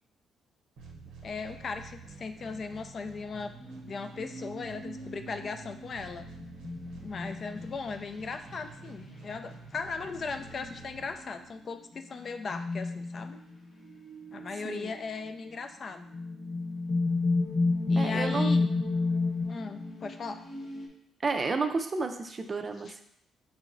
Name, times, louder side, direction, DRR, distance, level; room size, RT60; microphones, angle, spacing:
sound 1, 0.8-11.7, right 4 dB, 85° right, 0.7 m, -49 dB
voice 1, 1.2-3.5 3.9-6.3 7.0-13.4 14.3-16.0 17.9-18.7 19.4-20.4 22.9-23.0, left 4 dB, 45° left, 8 dB, 0.3 m, -38 dB
sound 2, 3.6-7.9 9.0-9.2 10.2-10.7 11.2-11.6 12.0-13.6 13.8-14.8 15.5-15.6 15.9-20.9, left 3 dB, 65° left, 1.1 m, -31 dB
voice 2, 18.0-18.6 21.2-23.0, right 4 dB, 35° right, 7 dB, 0.4 m, -31 dB
5.4 x 2.9 x 2.5 m, 0.74 s
cardioid pair, 90°, 0 cm